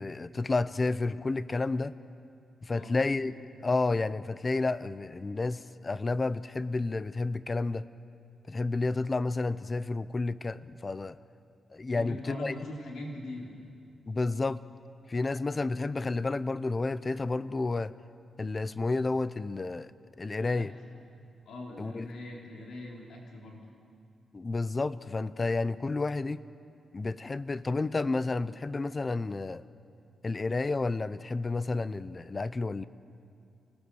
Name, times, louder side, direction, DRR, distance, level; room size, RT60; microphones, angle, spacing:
voice 1, 0.0-2.0 2.6-3.3 3.6-7.9 8.5-11.2 11.7-12.5 14.1-14.6 15.1-17.9 18.4-19.9 20.2-20.7 21.8-22.1 24.3-26.4 26.9-29.6 30.2-32.9, left 3 dB, 30° left, 15 dB, 0.6 m, -31 dB
voice 2, 11.9-13.5 20.4-20.7 21.5-23.6, left 1 dB, 85° left, -2 dB, 3.9 m, -41 dB
28.5 x 19.0 x 6.4 m, 2.5 s
cardioid pair, 105°, 0 cm